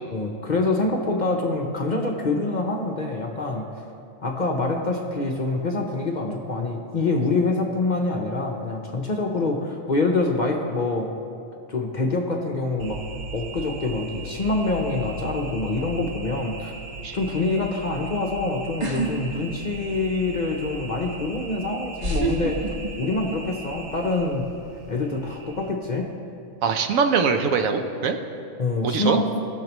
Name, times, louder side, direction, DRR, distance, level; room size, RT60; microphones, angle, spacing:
voice 1, 0.1-3.7 4.2-11.1 11.7-13.0 13.3-16.7 17.1-22.6 23.0-24.5 24.9-26.1 28.6-29.3, left 2 dB, 45° left, 1 dB, 0.7 m, -25 dB
sound 1, 12.8-25.7, right 1 dB, 65° right, 1.4 m, -38 dB
sound 2, 18.8-19.1 19.5-20.1 21.1-21.2 22.0-23.4 23.7-24.1, right 1 dB, 35° right, 1.2 m, -26 dB
voice 2, 26.6-28.2 28.8-29.2, right 5 dB, 80° right, 6 dB, 1.1 m, -22 dB
18.0 x 6.6 x 3.0 m, 2.7 s
omnidirectional pair, 1.4 m